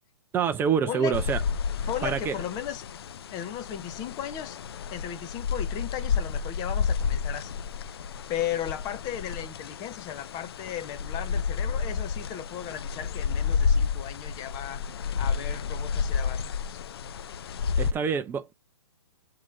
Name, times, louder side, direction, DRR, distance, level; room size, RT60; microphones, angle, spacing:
voice 1, 0.3-1.4 2.0-2.3 17.8-18.5, right 7 dB, 15° right, 0.6 m, -26 dB
voice 2, 0.9-1.2 1.9-2.9 3.3-4.6 4.9-7.5 7.8-8.0 8.3-14.8 15.1-16.8, left 10 dB, 25° left, 1.0 m, -36 dB
sound 1, 1.1-17.9, left 6 dB, 55° left, 0.6 m, -30 dB
7.3 x 3.8 x 4.6 m
hypercardioid pair, 130°, 15 cm